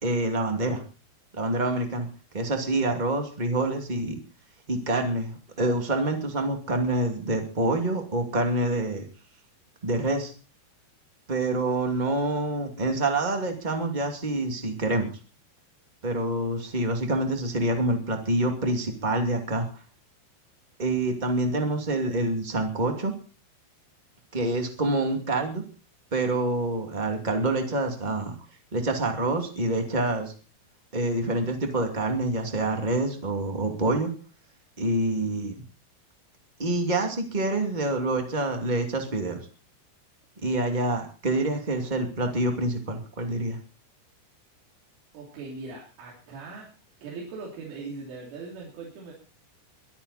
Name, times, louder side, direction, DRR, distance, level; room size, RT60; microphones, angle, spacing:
voice 1, 0.0-0.8 1.3-2.1 2.3-4.1 4.7-9.0 9.8-10.3 11.3-15.1 16.0-19.7 20.8-23.1 24.3-25.6 26.1-28.3 28.7-30.3 30.9-34.1 34.8-35.6 36.6-39.4 40.4-43.6, right 2 dB, 25° right, 4 dB, 1.0 m, -26 dB
voice 2, 45.1-46.7 47.0-49.1, right 4 dB, 85° right, -3 dB, 5.8 m, -40 dB
23.0 x 10.5 x 4.2 m, 0.36 s
omnidirectional pair, 5.5 m